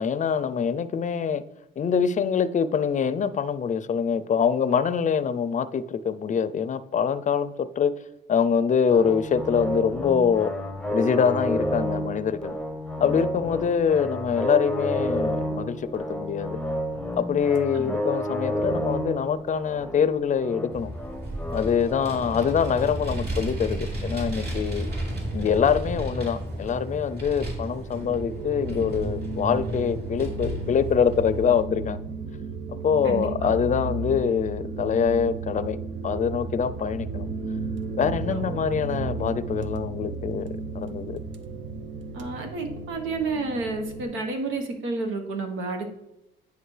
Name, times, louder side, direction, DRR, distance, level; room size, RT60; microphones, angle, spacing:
voice 1, 0.0-1.4 1.8-7.9 8.3-10.5 10.9-12.6 13.0-16.6 17.2-20.9 21.5-24.9 25.3-32.1 32.8-35.8 36.0-37.3 38.0-40.5 40.7-41.2, left 7 dB, 40° left, 14 dB, 0.5 m, -24 dB
sound 1, 8.9-22.9, equal, 5° left, 0.7 m, -31 dB
Vehicle, 20.7-31.6, right 1 dB, 55° right, 3.0 m, -33 dB
sound 2, 27.8-44.0, right 4 dB, 70° right, 0.7 m, -34 dB
voice 2, 33.0-33.5 38.3-38.6 42.1-45.9, right 3 dB, 90° right, 3 dB, 1.3 m, -30 dB
10.0 x 5.0 x 3.3 m, 0.92 s
cardioid pair, 90°, 20 cm